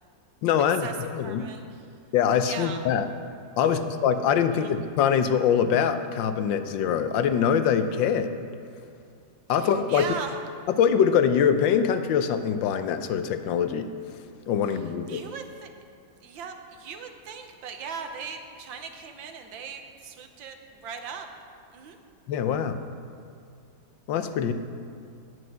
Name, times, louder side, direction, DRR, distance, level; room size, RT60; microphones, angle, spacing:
voice 1, 0.4-1.4 2.1-3.1 3.6-8.4 9.5-10.1 10.8-13.9 14.5-15.3 22.3-22.8 24.1-24.5, left 8 dB, 75° left, 10 dB, 1.4 m, -23 dB
voice 2, 1.2-1.9 2.4-2.8 3.6-3.8 4.5-4.7 9.6-10.4 14.7-14.8 15.1-15.7 16.2-20.6 20.8-21.3 21.7-22.0, right 6 dB, 80° right, 6 dB, 1.7 m, -39 dB
9.3 x 8.2 x 8.7 m, 2.4 s
omnidirectional pair, 2.1 m